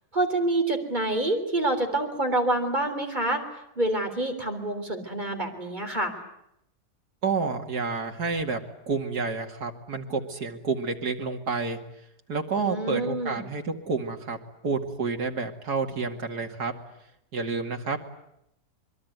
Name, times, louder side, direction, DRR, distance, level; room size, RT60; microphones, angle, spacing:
voice 1, 0.1-3.5 3.8-6.1 12.6-13.4, right 2 dB, 25° right, 4 dB, 3.7 m, -27 dB
voice 2, 7.2-8.6 8.9-11.8 12.3-14.4 14.6-16.7 17.3-18.0, right 4 dB, 75° right, 3 dB, 2.8 m, -29 dB
25.0 x 23.0 x 9.5 m, 0.81 s
omnidirectional pair, 1.7 m